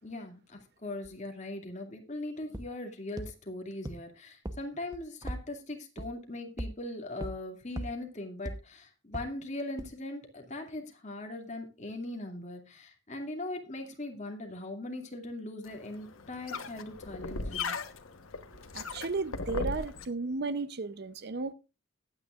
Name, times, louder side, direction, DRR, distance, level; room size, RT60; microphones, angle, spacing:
voice 1, 0.0-17.8, left 2 dB, 35° left, 2.4 m, -40 dB
sound 1, 2.5-2.6 3.2-3.3 3.9-4.0 4.5-4.6 4.9-5.4 6.0-6.1 6.6-6.7 7.2-7.3 7.8-7.9 8.5-8.6 9.1-9.2 9.8-9.9, right 1 dB, 20° right, 0.9 m, -35 dB
sound 2, 15.6-20.0, left 4 dB, 85° left, 1.2 m, -38 dB
voice 2, 18.7-21.5, right 3 dB, 50° right, 0.7 m, -34 dB
21.0 x 9.2 x 2.5 m
head